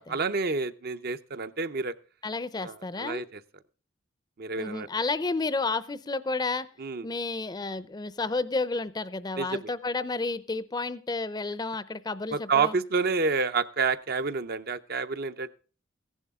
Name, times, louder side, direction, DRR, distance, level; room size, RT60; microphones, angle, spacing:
voice 1, 0.0-1.9 2.6-3.4 4.4-4.9 6.8-7.1 9.4-9.7 12.3-15.5, right 4 dB, 55° right, 10 dB, 0.7 m, -29 dB
voice 2, 2.2-3.2 4.6-6.7 7.0-12.7, left 3 dB, 20° left, 16 dB, 0.5 m, -31 dB
15.5 x 11.0 x 3.6 m, 0.36 s
head